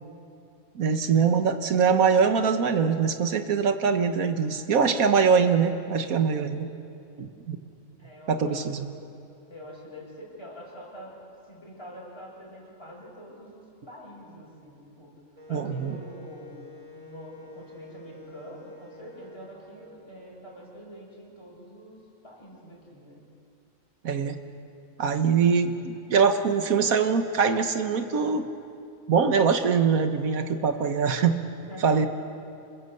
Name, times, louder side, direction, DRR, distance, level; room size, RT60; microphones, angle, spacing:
voice 1, 0.7-6.7 7.2-7.6 8.3-8.9 15.5-15.9 24.0-24.4 25.0-28.5 29.1-31.4 31.8-32.1, right 6 dB, 90° right, 8 dB, 1.7 m, -23 dB
voice 2, 8.0-8.7 9.5-11.2 11.5-15.1 15.5-16.6 16.9-23.2 31.7-32.1, equal, 20° left, -5 dB, 7.5 m, -45 dB
Wind instrument woodwind instrument, 15.4-20.0, left 2 dB, 25° right, 3.5 m, -48 dB
28.0 x 20.5 x 7.9 m, 2.6 s
omnidirectional pair, 1.4 m